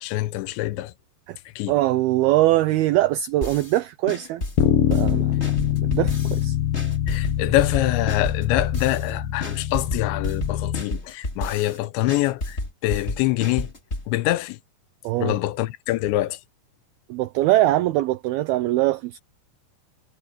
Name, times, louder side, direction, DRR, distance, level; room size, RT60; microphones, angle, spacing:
voice 1, 0.0-0.9 1.6-1.7 7.1-12.6 12.8-13.7 14.1-14.6 15.2-16.4, left 17 dB, 85° left, 3.0 m, -24 dB
voice 2, 1.7-4.4 4.8-5.4 5.8-6.6 15.0-15.4 17.1-19.2, right 15 dB, 90° right, 2.2 m, -22 dB
sound 1, 3.4-3.8 4.1-6.4 6.7-9.1 9.4-11.8 12.1-14.1, left 2 dB, 15° left, 3.1 m, -31 dB
Bass guitar, 4.6-10.8, left 11 dB, 60° left, 2.8 m, -24 dB
omnidirectional pair, 5.2 m